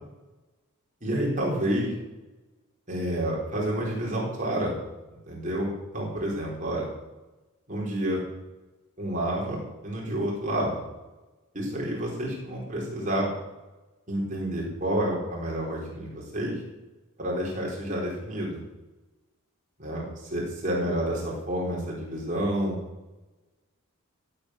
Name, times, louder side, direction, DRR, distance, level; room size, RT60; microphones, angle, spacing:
voice 1, 1.0-1.9 2.9-4.7 5.3-6.9 7.7-8.2 9.0-10.9 11.5-13.3 14.1-16.6 17.2-18.6 19.8-22.8, right 1 dB, 35° right, -3 dB, 4.2 m, -29 dB
15.5 x 8.3 x 6.5 m, 1.1 s
head